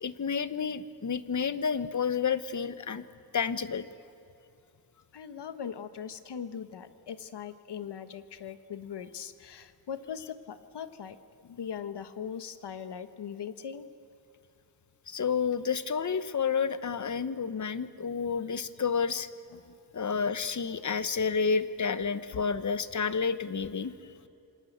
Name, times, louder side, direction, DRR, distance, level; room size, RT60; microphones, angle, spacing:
voice 1, 0.0-3.0 3.3-3.9 15.1-19.3 19.9-23.9, left 6 dB, 45° left, 13 dB, 1.1 m, -30 dB
voice 2, 5.1-11.2 11.4-13.9 19.5-19.7 20.1-20.2 22.3-22.4, left 7 dB, 85° left, 11 dB, 1.4 m, -40 dB
27.5 x 26.0 x 8.1 m, 2.7 s
wide cardioid pair, 140°, 40 cm